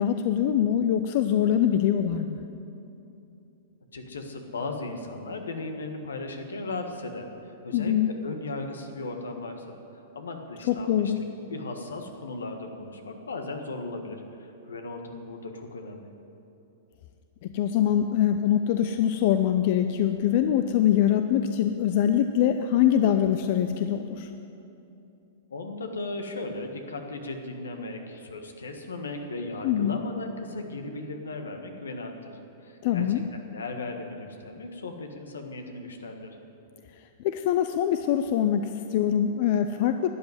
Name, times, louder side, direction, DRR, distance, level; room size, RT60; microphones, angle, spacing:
voice 1, 0.0-2.4 7.7-8.1 10.7-11.2 17.4-24.3 29.6-30.0 32.8-33.2 37.2-40.1, left 10 dB, 55° left, 8 dB, 0.6 m, -23 dB
voice 2, 3.9-16.1 25.5-36.4, left 2 dB, 85° left, 4 dB, 1.6 m, -37 dB
12.5 x 8.3 x 9.6 m, 2.8 s
hypercardioid pair, 115°, 0 cm